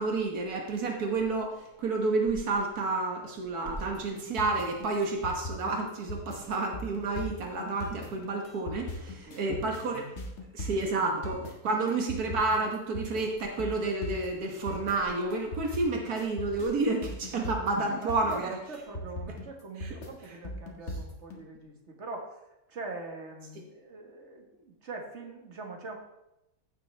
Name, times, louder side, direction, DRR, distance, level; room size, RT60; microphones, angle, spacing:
voice 1, 0.0-10.1 10.5-18.5 19.8-19.9, right 3 dB, 85° right, 2 dB, 1.8 m, -30 dB
sound 1, 3.8-21.4, left 1 dB, 50° left, 2.1 m, -39 dB
voice 2, 9.0-9.9 10.6-11.1 17.3-17.5 17.9-26.0, right 3 dB, 50° right, 2 dB, 1.8 m, -43 dB
15.5 x 6.8 x 3.4 m, 0.89 s
omnidirectional pair, 1.6 m